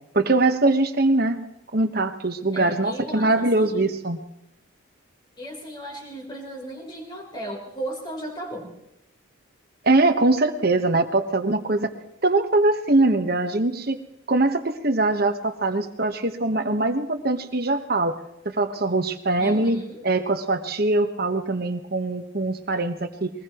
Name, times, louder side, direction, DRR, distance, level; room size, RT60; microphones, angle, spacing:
voice 1, 0.1-1.4 1.7-4.2 9.8-11.9 12.2-14.0 14.3-18.1 18.4-19.8 20.0-23.3, right 2 dB, 50° right, 8 dB, 1.3 m, -22 dB
voice 2, 2.5-3.9 5.4-8.8 19.4-20.0, right 1 dB, 20° left, -1 dB, 4.0 m, -36 dB
22.5 x 20.0 x 3.1 m, 0.84 s
head